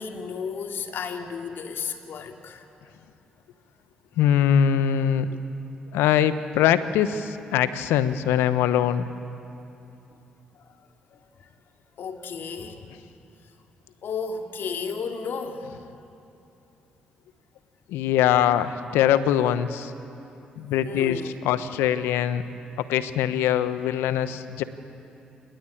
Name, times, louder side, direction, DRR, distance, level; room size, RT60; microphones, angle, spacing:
voice 1, 0.0-2.7 11.1-11.2 12.0-12.8 14.0-15.6 20.8-21.3, left 5 dB, 65° left, 4 dB, 2.4 m, -33 dB
voice 2, 4.2-5.3 5.9-9.0 17.9-19.9 20.6-22.4 22.8-24.6, left 10 dB, 80° left, 13 dB, 1.0 m, -22 dB
28.5 x 19.5 x 8.7 m, 2.8 s
hypercardioid pair, 45°, 4 cm